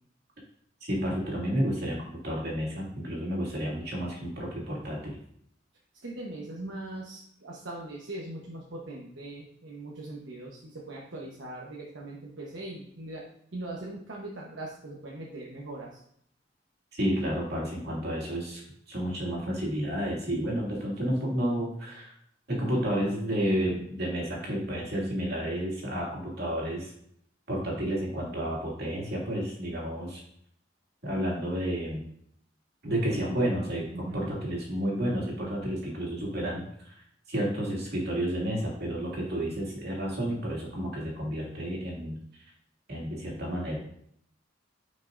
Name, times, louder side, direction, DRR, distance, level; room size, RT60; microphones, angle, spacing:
voice 1, 0.8-5.2 16.9-22.1 22.5-26.9 27.5-30.2 31.0-32.0 32.8-42.2 42.9-43.8, equal, 60° right, -3 dB, 2.4 m, -31 dB
voice 2, 6.0-13.2 13.5-16.0 33.9-34.3, right 2 dB, 80° right, -3 dB, 1.1 m, -40 dB
9.6 x 5.4 x 2.6 m, 0.68 s
head